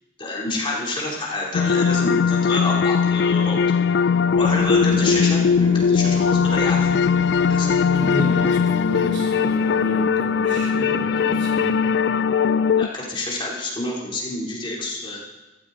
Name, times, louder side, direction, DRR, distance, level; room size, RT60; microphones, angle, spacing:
voice 1, 0.2-3.6 4.4-7.0 7.5-7.7 12.7-15.2, left 2 dB, 30° left, -4 dB, 3.2 m, -28 dB
sound 1, 1.5-12.9, left 6 dB, 65° left, 0.3 m, -19 dB
Singing, 4.3-9.7, left 1 dB, 10° left, 3.6 m, -34 dB
voice 2, 4.9-5.3 7.9-11.9, equal, 85° right, -2 dB, 3.3 m, -31 dB
14.5 x 13.5 x 3.9 m, 1.1 s
head